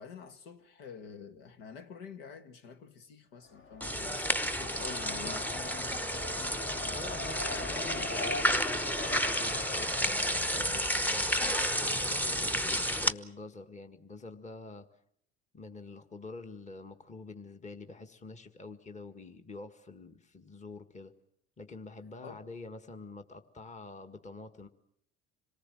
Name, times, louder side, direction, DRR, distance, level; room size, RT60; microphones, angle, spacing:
voice 1, 0.0-5.7 22.2-22.4, left 6 dB, 75° left, 1.8 m, -48 dB
Race car auto racing, 3.4-12.5, left 3 dB, 40° left, 1.9 m, -43 dB
sound 1, 3.8-13.1, equal, 5° left, 1.0 m, -31 dB
voice 2, 6.9-14.9 15.5-21.1 21.6-24.7, left 3 dB, 25° left, 1.8 m, -46 dB
27.0 x 19.0 x 7.6 m
hypercardioid pair, 70°, 30 cm